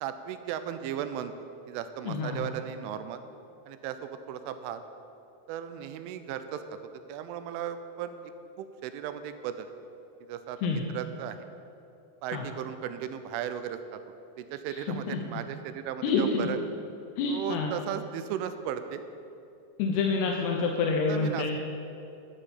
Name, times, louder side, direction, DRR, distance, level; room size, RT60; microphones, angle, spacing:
voice 1, 0.0-1.3 1.7-3.2 3.7-4.8 5.5-6.8 7.1-8.2 8.6-9.7 10.3-11.4 12.2-14.0 14.4-16.6 17.3-19.0 21.1-21.6, right 9 dB, 80° right, 10 dB, 3.0 m, -36 dB
voice 2, 2.0-2.5 10.6-10.8 12.3-12.5 14.7-15.2 16.0-16.5 17.2-17.7 19.8-21.6, left 4 dB, 75° left, 1 dB, 2.5 m, -28 dB
11.5 x 8.7 x 8.4 m, 2.7 s
omnidirectional pair, 5.9 m